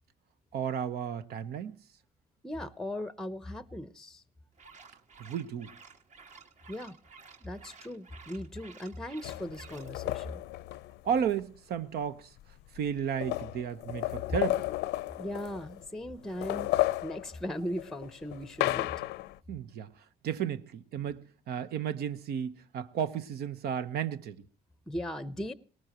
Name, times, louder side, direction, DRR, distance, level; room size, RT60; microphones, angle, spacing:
voice 1, 0.5-1.8 5.2-5.7 11.0-12.3 12.7-14.6 19.5-24.4, right 8 dB, 70° right, 1.1 m, -33 dB
voice 2, 2.4-4.2 6.7-7.0 7.4-10.4 15.2-16.7 17.0-18.9 24.9-25.5, equal, 5° left, 0.8 m, -38 dB
sound 1, 4.5-9.9, right 5 dB, 45° right, 2.0 m, -53 dB
sound 2, 9.2-11.4 12.4-12.5 12.8-15.9 16.2-19.4, left 17 dB, 85° left, 0.6 m, -33 dB
19.0 x 18.5 x 3.0 m
cardioid pair, 110°, 17 cm